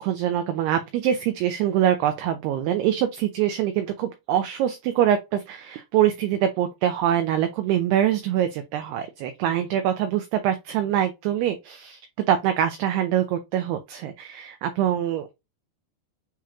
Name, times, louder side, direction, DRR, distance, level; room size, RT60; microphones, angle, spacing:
voice 1, 0.0-12.0 12.3-15.3, right 10 dB, 80° right, 2.4 m, -24 dB
7.5 x 3.0 x 2.3 m
omnidirectional pair, 5.2 m